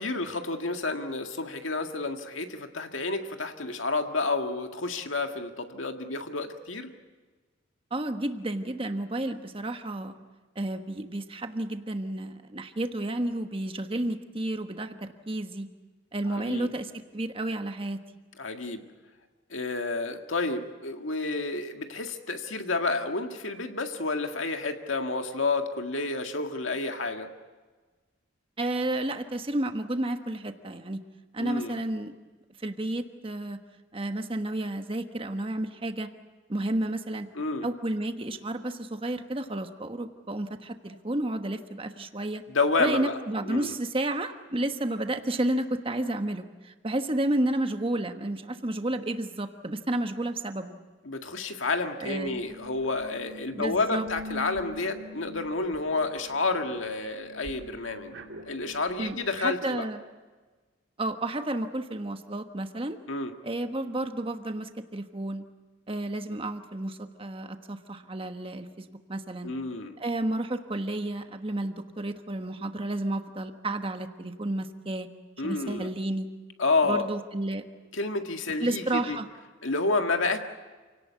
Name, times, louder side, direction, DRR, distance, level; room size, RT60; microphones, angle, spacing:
voice 1, 0.0-6.9 16.3-16.7 18.4-18.8 19.5-27.3 31.4-31.8 37.4-37.7 42.5-43.2 43.5-43.7 51.0-58.1 58.4-59.9 63.1-63.3 69.4-69.9 75.4-75.9 76.6-77.1 77.9-79.2 79.6-80.4, left 3 dB, 90° left, 5 dB, 1.9 m, -30 dB
voice 2, 7.9-10.1 10.5-15.7 16.1-18.0 28.6-31.0 31.3-32.1 32.6-33.6 33.9-36.1 36.5-37.3 37.6-42.4 42.8-50.8 52.0-52.4 53.5-54.1 59.0-60.0 61.0-63.0 63.4-65.4 65.9-69.5 70.0-75.1 75.4-76.3 76.8-77.6 78.6-79.3, right 1 dB, 30° right, 7 dB, 1.3 m, -31 dB
sound 1, 52.2-59.2, left 2 dB, 80° right, 2.6 m, -45 dB
28.0 x 18.0 x 8.3 m, 1.4 s
head